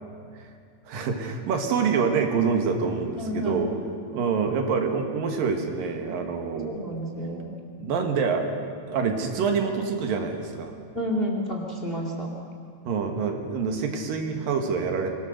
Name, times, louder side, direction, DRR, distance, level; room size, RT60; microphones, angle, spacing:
voice 1, 0.9-3.7 4.1-6.8 7.8-10.8 12.9-15.1, right 5 dB, 85° right, 4 dB, 3.5 m, -26 dB
voice 2, 3.2-3.7 6.6-7.5 10.9-12.3, equal, 20° left, 1 dB, 2.0 m, -30 dB
24.0 x 18.5 x 6.6 m, 2.2 s
omnidirectional pair, 3.9 m